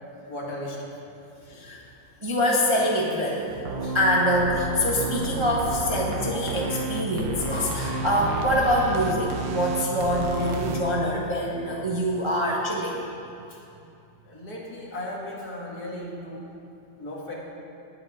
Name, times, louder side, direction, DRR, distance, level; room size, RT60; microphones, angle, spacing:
voice 1, 0.3-0.9 2.6-2.7 13.5-13.6 14.2-16.5 17.0-17.3, left 1 dB, 55° left, -4 dB, 2.4 m, -36 dB
voice 2, 1.5-1.8 2.2-13.0, equal, 20° right, -3 dB, 0.9 m, -25 dB
sound 1, 3.5-10.8, right 2 dB, 85° right, 1.7 m, -31 dB
19.5 x 8.4 x 3.6 m, 2.7 s
omnidirectional pair, 2.0 m